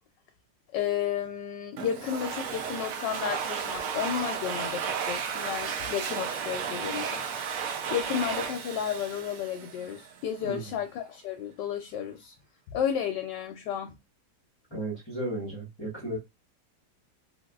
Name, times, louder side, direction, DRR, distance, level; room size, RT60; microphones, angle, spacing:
voice 1, 0.7-7.2 7.9-12.3 12.7-13.9, left 9 dB, 75° left, 1.1 m, -32 dB
Domestic sounds home sounds, 1.8-10.2, right 7 dB, 70° right, 0.8 m, -34 dB
voice 2, 14.7-16.2, right 1 dB, 20° left, 0.9 m, -34 dB
3.4 x 2.6 x 2.3 m
omnidirectional pair, 2.0 m